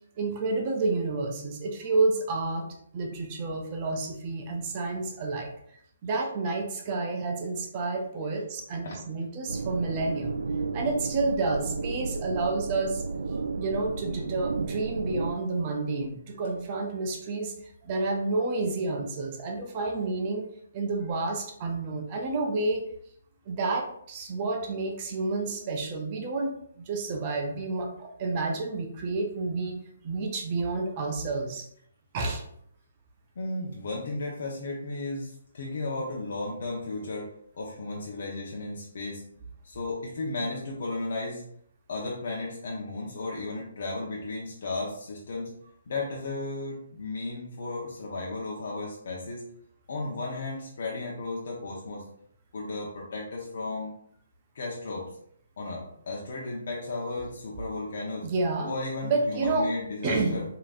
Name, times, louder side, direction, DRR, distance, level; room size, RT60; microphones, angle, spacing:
voice 1, 0.2-2.7 2.9-5.5 6.0-10.4 10.7-13.0 13.5-17.5 17.8-20.4 20.7-22.9 23.5-29.7 30.0-31.7 32.1-32.4 58.2-58.7 59.0-59.7 60.0-60.4, right 3 dB, 30° right, 2 dB, 0.6 m, -29 dB
sound 1, 9.5-15.3, right 4 dB, 80° right, 0.3 m, -33 dB
voice 2, 33.4-39.2 39.6-41.4 41.9-45.5 45.9-49.4 49.9-52.1 52.5-53.9 54.5-55.1 55.6-58.3 58.7-60.4, left 2 dB, 60° left, -2 dB, 0.8 m, -34 dB
5.0 x 2.8 x 2.5 m, 0.67 s
hypercardioid pair, 160°, 0 cm